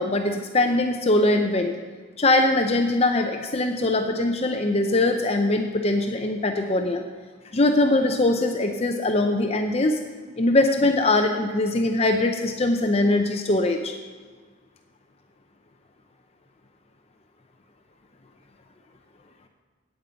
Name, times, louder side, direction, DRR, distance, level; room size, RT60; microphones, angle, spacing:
voice 1, 0.0-1.7 2.2-7.0 7.5-10.0 10.4-13.9, left 2 dB, 30° left, 4 dB, 0.6 m, -22 dB
9.1 x 8.9 x 6.9 m, 1.5 s
head